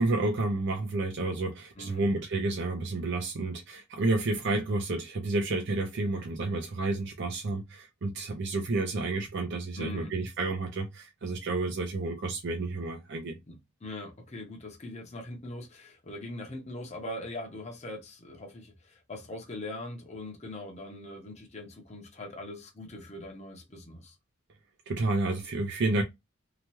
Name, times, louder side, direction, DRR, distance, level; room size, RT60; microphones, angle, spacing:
voice 1, 0.0-13.4 24.9-26.0, right 2 dB, 60° right, 0.5 m, -30 dB
voice 2, 9.8-10.1 13.5-24.2, left 1 dB, 35° left, 0.8 m, -41 dB
2.9 x 2.3 x 2.9 m
head